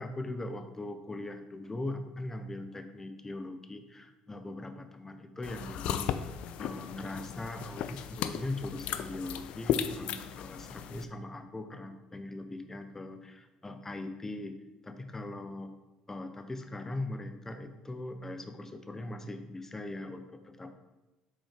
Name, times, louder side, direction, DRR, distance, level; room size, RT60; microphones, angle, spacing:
voice 1, 0.0-6.1 6.6-14.6 14.8-15.7 16.1-20.7, left 2 dB, 20° left, 8 dB, 0.8 m, -40 dB
sound 1, 5.4-11.0, left 9 dB, 65° left, 0.4 m, -36 dB
6.3 x 4.0 x 5.1 m, 1.1 s
hypercardioid pair, 70°, 2 cm